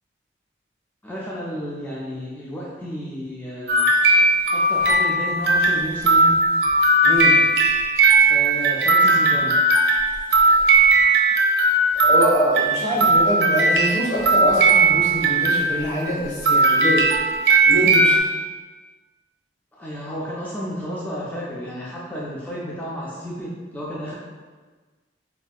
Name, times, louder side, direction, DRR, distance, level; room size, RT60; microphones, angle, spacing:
voice 1, 1.0-3.9 4.5-6.4 8.3-9.6 19.8-24.1, equal, 10° left, -6 dB, 0.4 m, -32 dB
sound 1, 3.7-16.2 16.4-18.2, right 2 dB, 60° right, 0.4 m, -18 dB
voice 2, 7.0-7.3 10.5-10.6 12.0-17.0 17.6-18.2, equal, 75° left, -7 dB, 1.1 m, -24 dB
4.2 x 2.6 x 2.3 m, 1.4 s
head